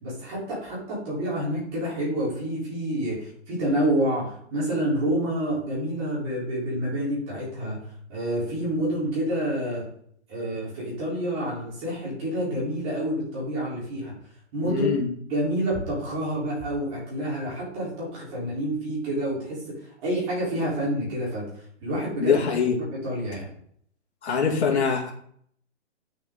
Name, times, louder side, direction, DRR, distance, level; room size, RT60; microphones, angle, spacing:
voice 1, 0.0-7.8 8.1-9.9 10.3-14.1 14.5-14.9 15.3-21.4 21.8-22.4 22.8-23.5, right 1 dB, 20° right, -6 dB, 4.0 m, -28 dB
voice 2, 14.6-15.1 22.2-22.8 24.2-25.1, left 6 dB, 65° left, 0 dB, 2.7 m, -23 dB
10.5 x 6.8 x 3.9 m, 0.64 s
hypercardioid pair, 170°, 36 cm